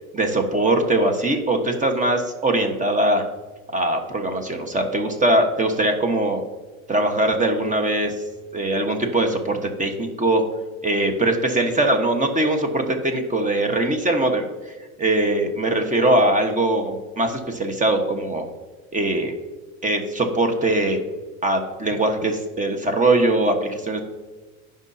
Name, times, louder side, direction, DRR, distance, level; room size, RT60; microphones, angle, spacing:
voice 1, 0.1-3.2 3.7-6.4 6.9-8.1 8.5-10.4 10.8-14.4 15.0-18.4 18.9-19.3 19.8-21.0 21.4-24.0, right 2 dB, 20° right, 5 dB, 1.3 m, -21 dB
15.5 x 5.4 x 2.8 m, 1.3 s
supercardioid pair, 115°, 42 cm